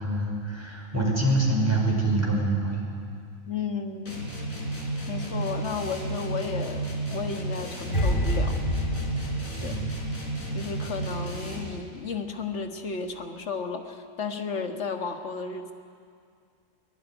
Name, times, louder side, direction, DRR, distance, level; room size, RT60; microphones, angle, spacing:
voice 1, 0.0-2.9 9.6-9.8, right 2 dB, 10° right, -1 dB, 5.1 m, -25 dB
voice 2, 3.5-4.2 5.1-8.9 9.6-9.9 10.5-15.7, left 5 dB, 55° left, 5 dB, 1.8 m, -33 dB
sound 1, 4.1-11.8, right 2 dB, 85° left, 4.2 m, -32 dB
sound 2, 7.9-11.1 11.4-11.6, left 1 dB, 40° left, 1.7 m, -29 dB
22.0 x 20.5 x 10.0 m, 2.3 s
omnidirectional pair, 1.4 m